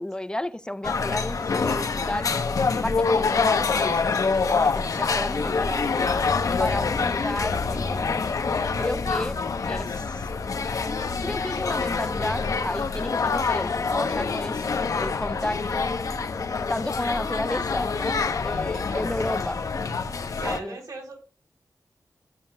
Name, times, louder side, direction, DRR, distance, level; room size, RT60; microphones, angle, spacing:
voice 1, 0.0-2.3 2.8-4.1 4.4-5.9 6.6-8.2 8.8-9.4 9.7-10.3 11.2-14.6 15.0-16.0 16.7-19.6 20.4-20.8, left 1 dB, 15° left, 0.4 m, -32 dB
sound 1, 0.8-20.6, left 4 dB, 70° left, 0.8 m, -26 dB
voice 2, 18.8-19.4 20.4-21.2, right 3 dB, 90° right, 3.3 m, -38 dB
13.0 x 7.4 x 2.2 m
wide cardioid pair, 130°, 6 cm